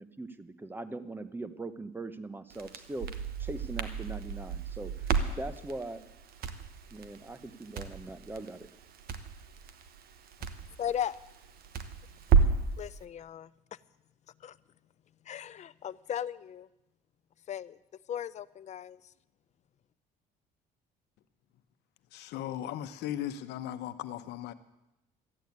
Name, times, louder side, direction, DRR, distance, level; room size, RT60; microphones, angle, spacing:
voice 1, 0.0-5.1 5.4-6.0 6.9-8.7, right 2 dB, 10° right, 13 dB, 0.9 m, -41 dB
Crackle, 2.5-12.7, right 6 dB, 65° right, 1.2 m, -32 dB
voice 2, 10.8-11.2 12.8-13.5 14.4-14.6 15.3-16.7 17.5-17.8 18.1-19.0, left 9 dB, 45° left, 18 dB, 0.5 m, -36 dB
voice 3, 22.1-24.5, left 11 dB, 80° left, 11 dB, 0.9 m, -37 dB
13.5 x 8.8 x 9.4 m, 0.93 s
cardioid pair, 110°, 17 cm